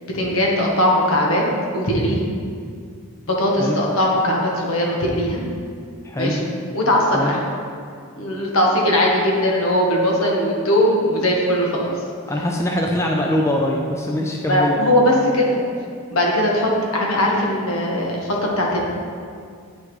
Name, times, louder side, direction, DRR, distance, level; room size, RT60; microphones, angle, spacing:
voice 1, 0.0-1.4 1.7-2.2 3.3-5.4 6.2-6.4 6.7-7.4 8.2-12.0 14.5-15.6 16.1-18.8, left 1 dB, 75° left, -2 dB, 1.3 m, -19 dB
voice 2, 6.0-6.4 7.1-7.3 12.3-14.8, left 1 dB, 15° left, 0 dB, 0.4 m, -22 dB
8.7 x 5.6 x 3.2 m, 2.2 s
head